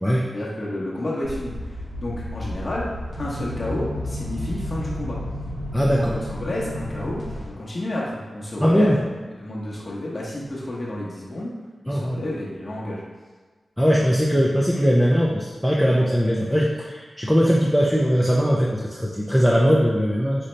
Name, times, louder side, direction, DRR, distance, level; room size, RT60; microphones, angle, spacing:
voice 1, 0.3-2.9 3.2-5.2 5.9-11.5 11.8-13.0, left 1 dB, 50° left, -5 dB, 0.9 m, -30 dB
sound 1, 1.2-7.5, left 1 dB, 85° right, 1.4 m, -32 dB
voice 2, 5.7-6.1 8.6-9.0 11.9-12.2 13.8-20.5, equal, ahead, -4 dB, 0.5 m, -20 dB
5.2 x 2.7 x 3.2 m, 1.4 s
cardioid pair, 60°, 0 cm